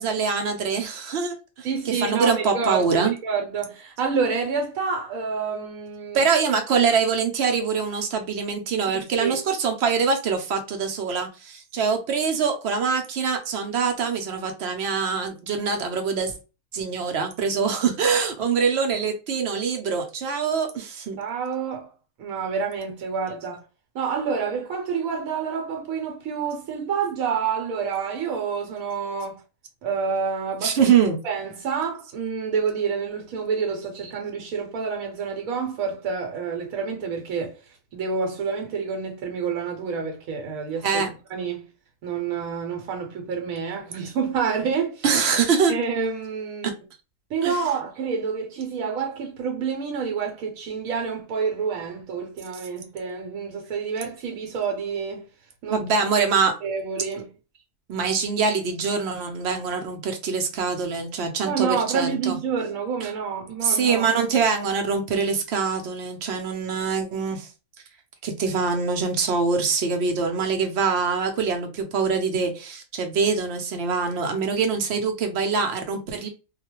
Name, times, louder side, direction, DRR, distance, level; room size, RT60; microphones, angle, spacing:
voice 1, 0.0-3.1 6.1-16.3 16.7-21.2 30.6-31.2 40.8-41.1 45.0-45.7 46.6-46.7 47.4-47.5 55.7-56.5 57.9-62.4 63.0-63.1 63.6-67.5 68.2-76.3, right 5 dB, 60° right, 0.7 m, -24 dB
voice 2, 1.6-6.2 8.9-9.4 21.2-21.9 22.2-23.6 23.9-29.4 29.8-30.8 31.2-37.6 37.9-41.0 41.3-41.7 42.0-45.0 45.7-46.7 47.3-55.3 55.6-55.8 56.6-57.3 61.4-64.1, right 6 dB, 80° right, 1.0 m, -28 dB
2.3 x 2.2 x 2.9 m
omnidirectional pair, 1.5 m